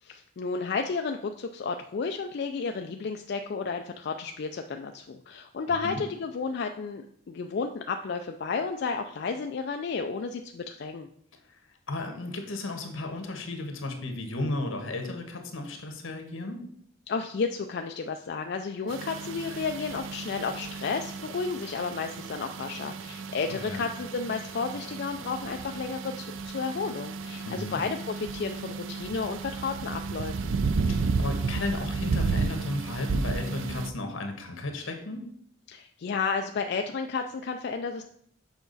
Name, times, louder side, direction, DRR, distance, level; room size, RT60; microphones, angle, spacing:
voice 1, 0.0-11.1 17.1-30.6 35.7-38.0, left 5 dB, 55° left, 5 dB, 0.4 m, -32 dB
voice 2, 11.9-16.6 23.7-23.9 27.4-27.8 30.8-35.2, left 2 dB, 80° left, 4 dB, 1.3 m, -34 dB
sound 1, 18.9-33.9, right 4 dB, 75° right, 0.4 m, -33 dB
7.0 x 4.9 x 4.0 m, 0.69 s
head